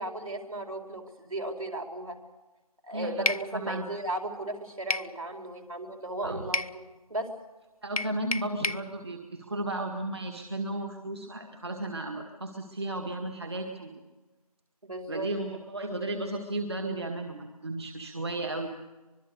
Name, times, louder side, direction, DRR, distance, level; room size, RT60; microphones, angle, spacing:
voice 1, 0.0-2.2 2.8-7.3 14.8-15.3, right 1 dB, 60° right, 3 dB, 4.5 m, -35 dB
voice 2, 2.9-3.8 6.2-6.5 7.8-13.9 15.1-18.7, right 1 dB, 40° right, 4 dB, 1.9 m, -34 dB
sound 1, 3.3-3.5 4.9-5.1 6.5-6.8 8.0-8.9, left 2 dB, 65° left, 0.9 m, -29 dB
24.5 x 22.0 x 6.7 m, 1.2 s
figure-of-eight pair, 165°, 20 cm